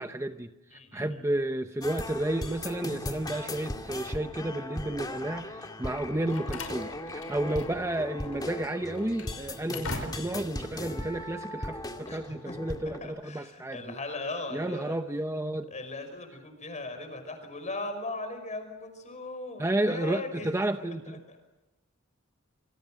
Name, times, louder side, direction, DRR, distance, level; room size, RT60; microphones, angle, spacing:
voice 1, 0.0-14.0 14.5-15.7 19.6-21.3, right 1 dB, 15° right, 8 dB, 0.8 m, -32 dB
voice 2, 0.7-1.0 7.5-7.6 12.1-12.6 13.0-15.0 15.7-20.7 21.1-21.4, left 2 dB, 35° left, 8 dB, 5.4 m, -38 dB
sound 1, 1.8-13.0, left 1 dB, 20° left, 2.2 m, -38 dB
Slam, 5.9-8.0 8.2-8.4 8.9-10.5, left 3 dB, 75° left, 5.3 m, -42 dB
27.0 x 26.5 x 6.3 m, 1.0 s
head